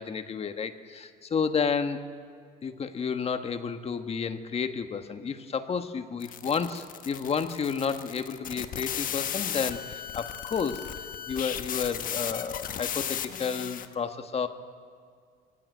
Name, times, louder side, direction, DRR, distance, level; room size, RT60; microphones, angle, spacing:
voice 1, 0.0-2.0 2.6-14.5, left 6 dB, 35° left, 9 dB, 1.5 m, -31 dB
sound 1, 6.2-13.9, left 9 dB, 55° left, 1.3 m, -35 dB
23.5 x 16.0 x 9.4 m, 2.1 s
cardioid pair, 110°, 17 cm